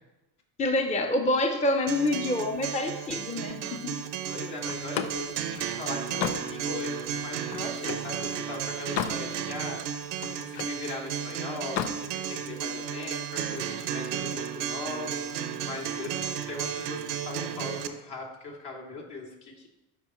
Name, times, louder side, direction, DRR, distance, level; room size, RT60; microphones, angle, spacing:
voice 1, 0.6-4.0, left 2 dB, 15° left, 4 dB, 0.6 m, -27 dB
Acoustic guitar, 1.9-17.9, right 8 dB, 80° right, 0.8 m, -34 dB
voice 2, 4.3-9.8 10.3-19.7, left 3 dB, 65° left, -2 dB, 2.6 m, -39 dB
Slam, 4.7-8.1 8.6-9.3 9.6-10.8 11.6-12.0, left 8 dB, 90° left, 0.7 m, -34 dB
12.5 x 5.0 x 3.1 m, 1.0 s
supercardioid pair, 90°, 41 cm